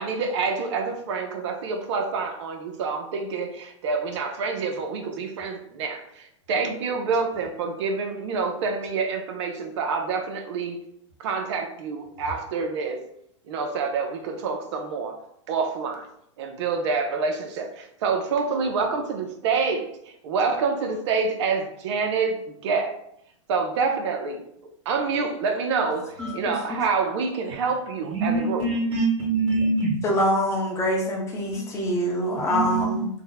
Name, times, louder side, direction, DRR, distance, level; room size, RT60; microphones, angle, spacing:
voice 1, 0.0-10.8 11.2-13.0 13.5-15.2 15.5-16.1 16.4-23.0 23.5-24.4 24.9-28.7, right 4 dB, 65° right, 3 dB, 0.6 m, -27 dB
voice 2, 26.2-26.8 30.0-33.1, equal, 20° left, -1 dB, 0.8 m, -25 dB
voice 3, 28.1-29.9 31.5-31.6 32.5-33.0, right 3 dB, 85° right, -4 dB, 1.2 m, -24 dB
2.7 x 2.1 x 3.9 m, 0.72 s
hypercardioid pair, 130°, 16 cm